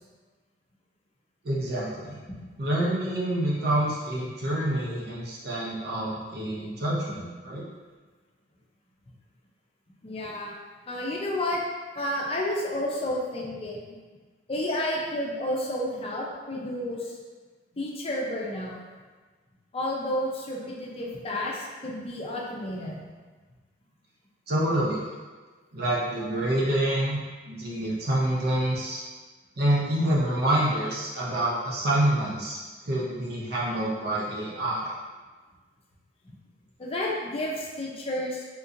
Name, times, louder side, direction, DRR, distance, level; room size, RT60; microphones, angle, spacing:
voice 1, 1.4-2.2 2.6-7.6 24.5-25.0 25.7-27.2 27.5-29.0 29.6-34.9, right 1 dB, 60° right, -6 dB, 0.7 m, -27 dB
voice 2, 10.0-10.6 10.9-11.6 11.9-13.8 14.5-17.2 17.7-18.8 19.7-23.0 36.2-36.3 36.8-38.4, left 1 dB, 35° left, -3 dB, 0.5 m, -31 dB
3.6 x 2.8 x 2.5 m, 1.4 s
head